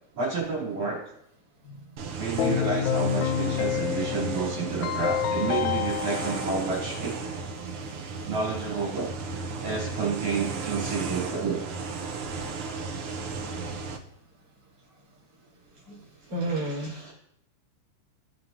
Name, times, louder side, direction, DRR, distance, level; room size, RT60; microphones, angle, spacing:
voice 1, 0.1-1.0 2.2-7.2 8.2-9.1 9.6-11.6 16.2-17.1, right 4 dB, 60° right, -6 dB, 4.5 m, -30 dB
sound 1, 2.0-14.0, right 4 dB, 75° right, 1.2 m, -35 dB
Keyboard (musical), 2.4-7.4, left 10 dB, 80° left, 1.8 m, -29 dB
voice 2, 16.3-17.1, right 2 dB, 30° right, -9 dB, 4.2 m, -31 dB
18.0 x 7.6 x 2.7 m, 0.76 s
omnidirectional pair, 3.8 m